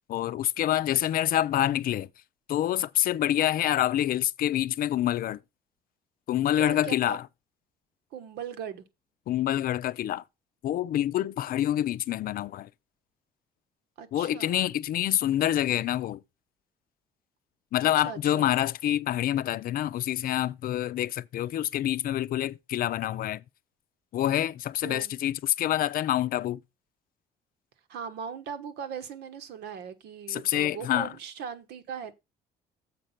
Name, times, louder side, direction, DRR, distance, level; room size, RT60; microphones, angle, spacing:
voice 1, 0.1-2.1 2.5-5.4 6.3-7.2 9.3-10.2 10.6-12.7 14.1-16.2 17.7-23.4 24.1-26.6 30.3-31.1, left 12 dB, 60° left, 0.5 m, -27 dB
voice 2, 6.6-7.2 8.1-8.8 14.0-14.6 17.8-18.5 24.8-25.1 27.9-32.1, right 7 dB, 75° right, 1.4 m, -39 dB
7.4 x 5.1 x 5.8 m
cardioid pair, 110°, 17 cm